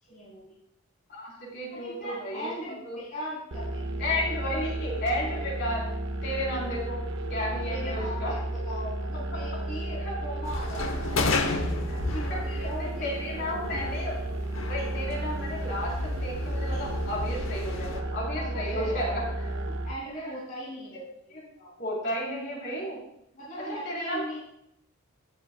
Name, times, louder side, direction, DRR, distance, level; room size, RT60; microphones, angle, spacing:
voice 1, 0.0-0.6 1.7-4.5 7.7-11.5 11.9-13.8 18.3-21.0 21.3-21.7 23.3-24.4, equal, 40° left, -9 dB, 2.7 m, -40 dB
voice 2, 1.1-2.5 2.8-3.0 4.0-5.9 6.2-7.0 7.3-8.3 9.5-9.6 10.0-10.2 11.9-12.0 12.3-14.2 14.7-19.2 21.3-21.4 21.8-23.0 23.8-24.2, left 1 dB, 55° left, -3 dB, 3.8 m, -33 dB
sound 1, 3.5-19.9, right 1 dB, 60° right, 0.7 m, -33 dB
sound 2, 10.4-18.0, left 3 dB, 75° left, 0.9 m, -33 dB
16.0 x 7.4 x 2.3 m, 0.78 s
head